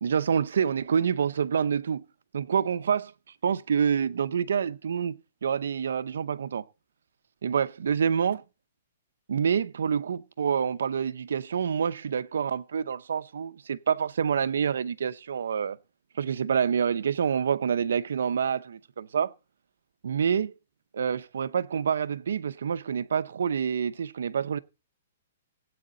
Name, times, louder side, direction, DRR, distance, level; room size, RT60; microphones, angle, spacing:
voice 1, 0.0-2.0 2.3-3.1 3.4-6.6 7.4-8.4 9.3-15.8 16.2-19.3 20.0-20.5 20.9-24.6, right 7 dB, 90° right, 0.8 m, -27 dB
16.5 x 8.5 x 3.9 m
hypercardioid pair, 165°, 0 cm